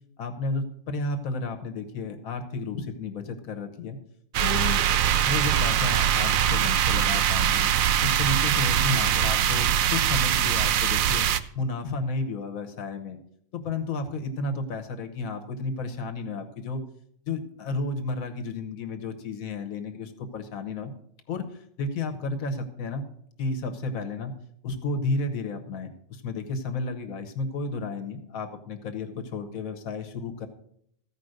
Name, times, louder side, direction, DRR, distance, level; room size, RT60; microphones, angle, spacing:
voice 1, 0.2-4.0 4.4-4.8 5.2-7.7 8.0-11.2 11.5-13.2 13.5-16.8 17.3-20.9 21.3-23.0 23.4-24.3 24.6-30.5, left 3 dB, 80° left, 7 dB, 1.5 m, -32 dB
sound 1, 4.3-11.4, right 10 dB, 80° right, 1.0 m, -23 dB
14.5 x 5.1 x 6.5 m, 0.70 s
omnidirectional pair, 1.4 m